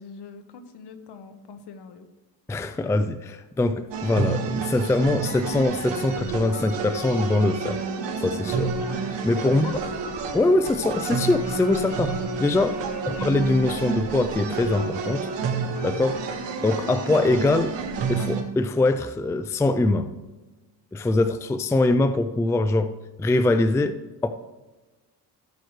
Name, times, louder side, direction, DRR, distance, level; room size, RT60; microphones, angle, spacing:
voice 1, 0.0-2.1 9.6-9.8 12.8-13.1, left 5 dB, 70° left, 8 dB, 1.2 m, -43 dB
voice 2, 2.5-7.8 8.2-8.8 9.2-9.8 10.3-12.8 13.1-15.3 15.8-16.2 16.6-17.7 18.1-20.1 20.9-22.9 23.2-24.0 24.2-24.3, left 2 dB, 5° left, 10 dB, 0.3 m, -23 dB
sound 1, 3.9-18.4, right 5 dB, 85° right, 1.9 m, -29 dB
17.0 x 7.8 x 3.2 m, 1.2 s
cardioid pair, 125°, 42 cm